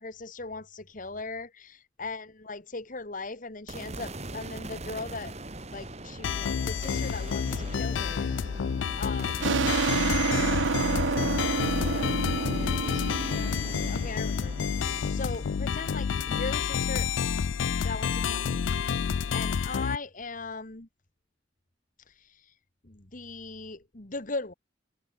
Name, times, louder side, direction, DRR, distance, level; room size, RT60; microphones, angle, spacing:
voice 1, 0.0-5.3 5.7-8.3 9.0-9.5 10.7-17.1 17.8-18.7 19.3-20.9 22.1-22.5 22.8-24.5, left 3 dB, 45° left, 1.9 m, -39 dB
sound 1, 3.7-18.0, right 2 dB, 35° right, 2.8 m, -42 dB
sound 2, 6.2-20.0, left 6 dB, 85° left, 0.4 m, -29 dB
sound 3, 9.4-14.7, right 4 dB, 85° right, 0.7 m, -29 dB
head